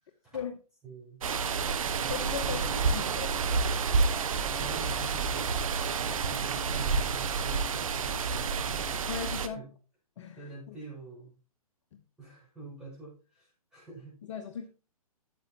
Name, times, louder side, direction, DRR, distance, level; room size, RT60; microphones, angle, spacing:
voice 1, 0.0-0.4 0.8-1.2 1.8-3.1 4.4-5.6 6.1-8.9 9.4-9.7 10.4-11.3 12.2-14.2, right 3 dB, 5° right, 6.1 m, -46 dB
sound 1, 1.2-9.5, right 5 dB, 65° right, 1.1 m, -29 dB
voice 2, 2.1-2.6 2.9-3.3 9.1-9.6 10.2-10.7 14.2-14.7, left 7 dB, 50° left, 0.9 m, -37 dB
12.0 x 7.8 x 2.9 m
figure-of-eight pair, 130°, 19 cm